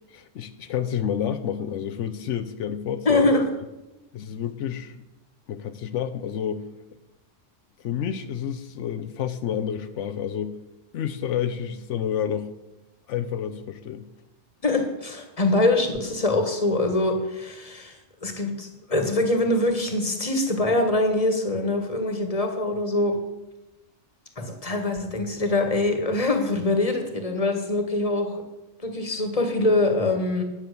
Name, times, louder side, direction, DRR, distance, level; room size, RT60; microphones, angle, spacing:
voice 1, 0.1-3.2 4.1-5.0 5.5-6.7 7.8-10.6 10.9-12.5 13.1-14.1, left 9 dB, 85° left, 8 dB, 1.0 m, -29 dB
voice 2, 3.0-3.4 14.6-23.2 24.4-28.4 28.8-30.4, left 2 dB, 30° left, 5 dB, 1.6 m, -24 dB
9.9 x 7.5 x 6.7 m, 0.98 s
omnidirectional pair, 1.2 m